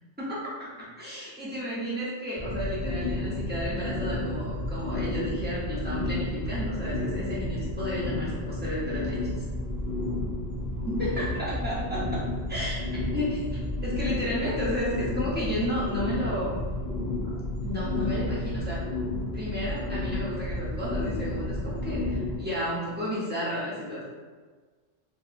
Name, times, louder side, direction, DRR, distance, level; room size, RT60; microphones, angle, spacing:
voice 1, 0.2-9.4 10.9-13.5 13.8-16.6 17.6-18.8 19.3-24.0, equal, 10° right, -8 dB, 0.5 m, -32 dB
sound 1, 2.4-22.4, left 1 dB, 25° right, 1.3 m, -31 dB
2.9 x 2.8 x 2.4 m, 1.5 s
omnidirectional pair, 1.3 m